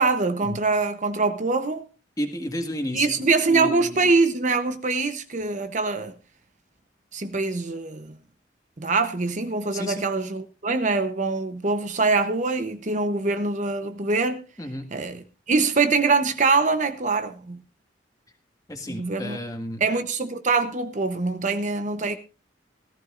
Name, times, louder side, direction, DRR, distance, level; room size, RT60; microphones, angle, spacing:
voice 1, 0.0-1.8 2.9-6.1 7.1-8.1 8.8-14.4 14.9-17.6 18.9-19.4 19.8-22.2, right 3 dB, 40° right, 0.9 m, -24 dB
voice 2, 2.2-4.1 9.7-10.0 14.6-14.9 18.7-19.8, left 1 dB, 20° left, 1.7 m, -32 dB
17.5 x 14.5 x 2.5 m
head